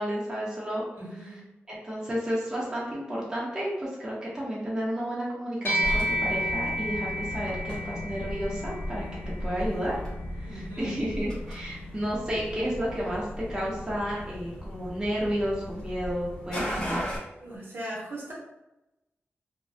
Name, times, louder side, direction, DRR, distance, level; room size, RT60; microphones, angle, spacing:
voice 1, 0.0-0.8 1.7-9.1 9.4-9.9 10.4-17.0, equal, 15° right, -6 dB, 0.5 m, -31 dB
voice 2, 0.9-1.4 9.6-9.7 10.4-11.0 17.4-18.3, right 1 dB, 55° right, -4 dB, 0.7 m, -39 dB
sound 1, 5.7-15.3, equal, 60° left, 0.8 m, -34 dB
sound 2, 5.8-17.2, equal, 20° left, 0.8 m, -37 dB
2.4 x 2.1 x 2.6 m, 0.94 s
wide cardioid pair, 165°, 4 cm